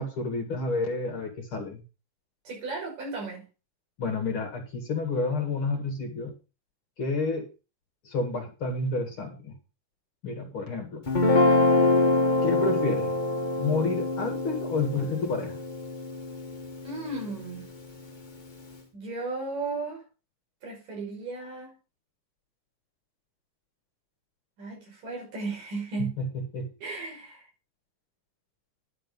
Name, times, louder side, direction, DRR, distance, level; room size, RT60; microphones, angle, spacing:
voice 1, 0.0-1.8 4.0-6.3 7.0-7.5 8.0-9.5 10.2-11.1 12.4-13.1 13.6-15.6 26.0-26.7, left 3 dB, 45° left, 2.4 m, -30 dB
voice 2, 2.4-3.4 16.8-17.7 18.9-20.0 20.6-21.8 24.6-26.1 26.8-27.5, right 3 dB, 80° right, 7.6 m, -35 dB
Guitar, 11.1-17.4, left 2 dB, 25° left, 0.9 m, -25 dB
11.0 x 6.9 x 5.4 m
omnidirectional pair, 3.7 m